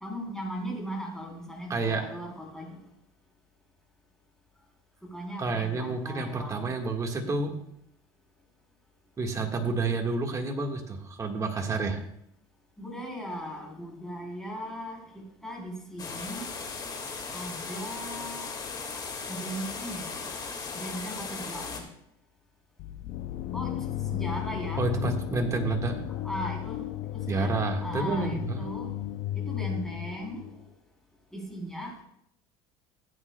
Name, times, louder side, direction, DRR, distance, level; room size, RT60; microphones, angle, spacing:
voice 1, 0.0-2.7 5.1-6.7 12.8-16.4 17.3-18.5 19.3-20.3 20.8-21.8 23.5-23.8 24.1-24.9 26.1-26.8 27.1-28.9 29.3-30.5 31.3-31.9, equal, 5° left, -2 dB, 3.6 m, -38 dB
voice 2, 1.7-2.0 5.4-7.5 9.2-12.0 24.8-26.0 27.3-28.6, right 3 dB, 25° right, 3 dB, 1.6 m, -29 dB
sound 1, 16.0-21.8, left 4 dB, 35° left, 1.9 m, -37 dB
sound 2, 22.8-30.6, left 12 dB, 65° left, 0.5 m, -34 dB
16.0 x 9.0 x 2.3 m, 0.74 s
supercardioid pair, 115°, 12 cm